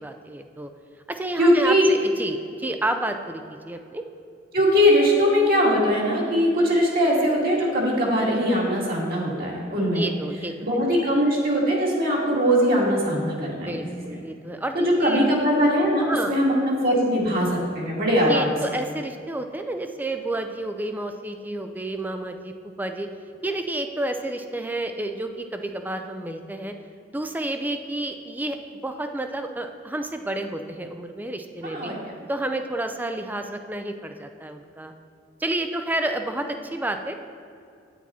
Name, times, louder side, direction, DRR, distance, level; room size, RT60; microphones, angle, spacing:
voice 1, 0.0-0.7 1.1-4.0 9.9-10.5 13.6-15.3 16.1-16.3 18.3-23.1 23.4-26.7 27.1-28.6 28.8-31.9 32.3-34.9 35.4-37.1, right 1 dB, 10° right, 6 dB, 0.5 m, -30 dB
voice 2, 1.4-1.9 4.5-10.1 10.6-14.2 14.7-18.6 31.6-32.2, equal, 55° right, -4 dB, 1.9 m, -21 dB
8.7 x 8.4 x 4.2 m, 2.3 s
head